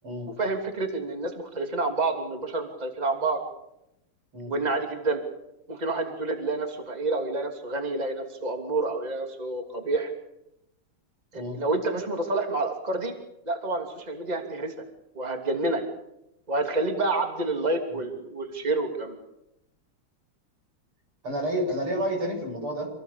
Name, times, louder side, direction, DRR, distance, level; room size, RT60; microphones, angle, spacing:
voice 1, 0.4-3.4 4.5-5.2 5.7-10.1 11.3-13.1 13.4-14.7 15.1-15.8 16.5-19.2, right 2 dB, 20° right, 4 dB, 2.9 m, -28 dB
voice 2, 21.2-22.9, equal, 90° right, 2 dB, 8.4 m, -30 dB
27.0 x 18.5 x 8.3 m, 0.84 s
omnidirectional pair, 2.3 m